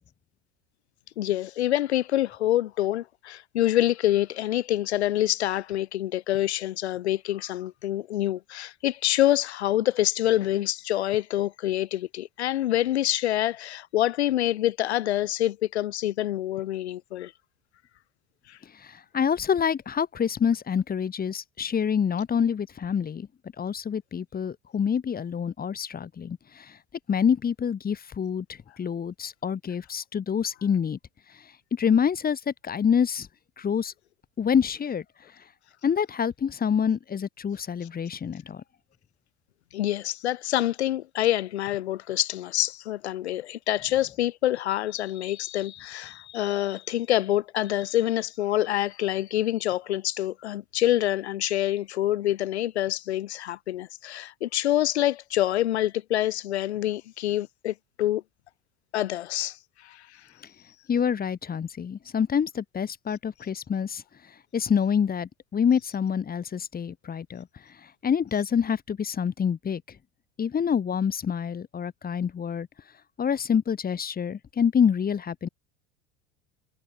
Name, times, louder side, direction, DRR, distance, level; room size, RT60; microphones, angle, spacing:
voice 1, 1.2-17.3 18.5-18.6 39.7-58.2 58.9-60.3, left 13 dB, 85° left, 0.6 m, -26 dB
voice 2, 18.8-23.3 23.6-26.8 27.1-31.0 31.7-33.3 33.6-33.9 34.4-35.0 35.8-38.6 60.9-64.0 64.5-67.5 68.0-69.8 70.4-72.7 73.2-75.5, left 7 dB, 30° left, 2.0 m, -26 dB
hypercardioid pair, 80°, 32 cm